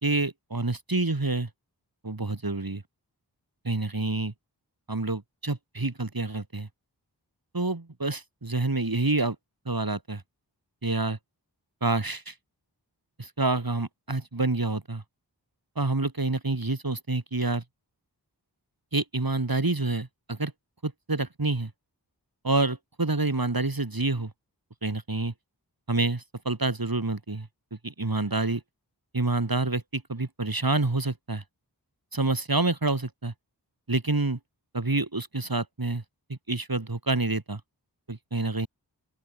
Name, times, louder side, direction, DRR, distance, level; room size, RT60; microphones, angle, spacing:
voice 1, 0.0-1.5 2.0-2.8 3.6-4.3 4.9-6.7 7.5-9.4 9.7-10.2 10.8-11.2 11.8-12.3 13.2-15.0 15.8-17.6 18.9-20.5 20.8-21.7 22.4-24.3 24.8-25.3 25.9-27.5 27.8-28.6 29.1-31.4 32.1-33.3 33.9-34.4 34.7-36.0 36.3-37.6 38.1-38.7, right 2 dB, 60° right, 5.1 m, -28 dB
open air
wide cardioid pair, 50°, 41 cm